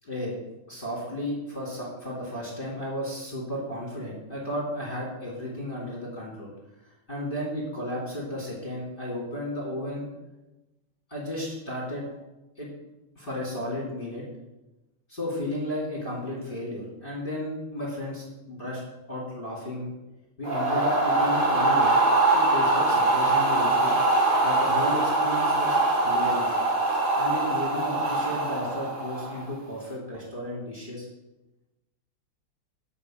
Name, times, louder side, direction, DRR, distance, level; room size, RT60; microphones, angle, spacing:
voice 1, 0.0-0.3 0.7-6.5 7.1-10.1 11.1-12.1 12.6-12.7 13.2-14.2 15.1-18.8 19.1-19.9 20.4-21.9 22.3-24.0 24.4-26.6 27.1-31.1, left 1 dB, 25° left, -6 dB, 2.8 m, -33 dB
sound 1, 20.4-29.5, right 2 dB, 55° right, 3.1 m, -23 dB
10.0 x 5.6 x 7.5 m, 1.0 s
omnidirectional pair, 2.3 m